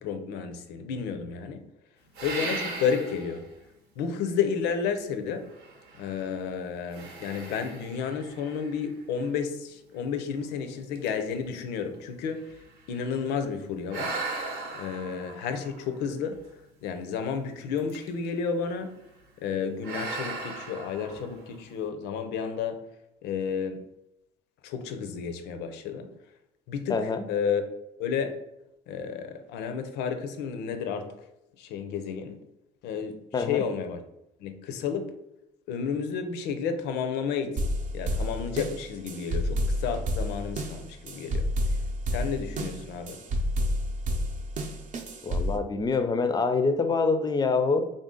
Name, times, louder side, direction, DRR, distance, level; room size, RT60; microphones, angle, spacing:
voice 1, 0.0-1.6 2.2-3.4 4.0-5.5 6.0-12.4 12.9-14.1 14.7-16.4 16.8-18.9 19.4-22.8 23.2-23.8 24.6-26.1 26.7-27.6 28.0-28.3 28.9-31.3 31.6-32.4 32.8-34.0 34.4-35.1 35.7-37.6 37.9-41.5 42.1-43.2, left 6 dB, 90° left, 8 dB, 0.5 m, -31 dB
sound 1, 2.1-3.5 4.1-4.2 5.5-6.4 6.9-9.3 10.0-10.1 10.5-10.7 10.9-13.2 13.9-16.6 17.8-18.3 18.6-18.9 19.8-21.7, right 3 dB, 80° right, 0.8 m, -38 dB
voice 2, 26.9-27.2 33.3-33.6 45.2-47.9, left 4 dB, 25° left, 10 dB, 0.4 m, -25 dB
sound 2, 37.6-45.6, equal, 50° right, 0.6 m, -30 dB
3.7 x 2.6 x 3.7 m, 0.86 s
cardioid pair, 110°, 17 cm